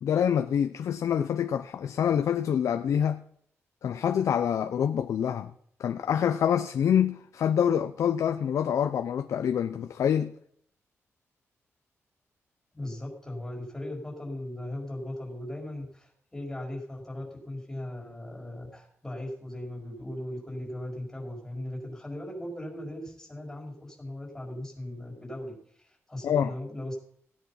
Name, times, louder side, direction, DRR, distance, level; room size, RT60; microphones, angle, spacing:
voice 1, 0.0-3.2 3.8-5.5 5.8-10.3 26.2-26.5, left 8 dB, 90° left, 0.7 m, -26 dB
voice 2, 12.7-26.9, left 1 dB, 10° left, 4.9 m, -38 dB
17.0 x 9.5 x 5.7 m
wide cardioid pair, 175°, 5 cm